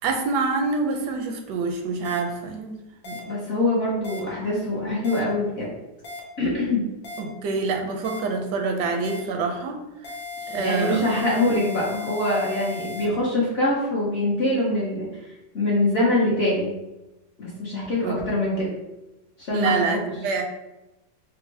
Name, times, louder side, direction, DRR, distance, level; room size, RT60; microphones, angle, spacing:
voice 1, 0.0-3.2 7.2-9.8 10.5-11.4 18.0-18.2 19.5-20.4, right 4 dB, 80° right, 4 dB, 1.2 m, -26 dB
sound 1, 2.0-2.2 3.0-3.2 4.0-4.2 5.0-5.2 6.0-6.2 7.0-7.2 8.0-8.2 9.0-9.2 10.0-13.1, left 4 dB, 90° left, 1.4 m, -36 dB
voice 2, 3.3-5.7 6.4-6.8 10.5-15.1 15.5-16.7 17.4-18.7 19.4-20.0, left 1 dB, 50° left, -5 dB, 0.8 m, -24 dB
4.2 x 2.0 x 3.1 m, 0.99 s
omnidirectional pair, 1.8 m